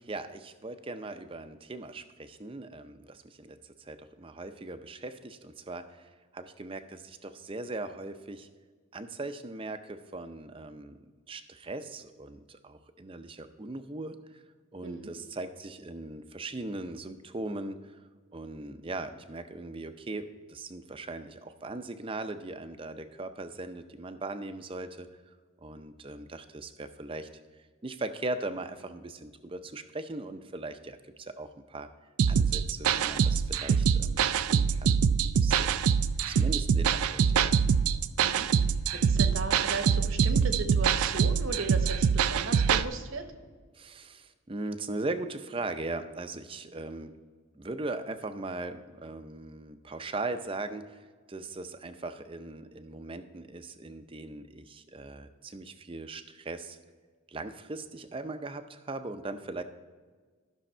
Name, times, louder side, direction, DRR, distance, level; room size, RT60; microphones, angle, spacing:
voice 1, 0.0-8.5 8.9-14.4 14.7-18.0 18.3-25.1 25.6-27.3 27.8-31.9 32.3-35.8 36.3-37.5 43.7-47.2 47.5-56.8 57.3-59.6, right 2 dB, 25° right, 9 dB, 0.5 m, -39 dB
voice 2, 14.8-15.1 38.2-38.5 38.9-43.3, right 3 dB, 70° right, 7 dB, 1.0 m, -36 dB
sound 1, 32.2-42.8, right 7 dB, 85° right, 0.4 m, -25 dB
12.5 x 6.3 x 4.4 m, 1.5 s
head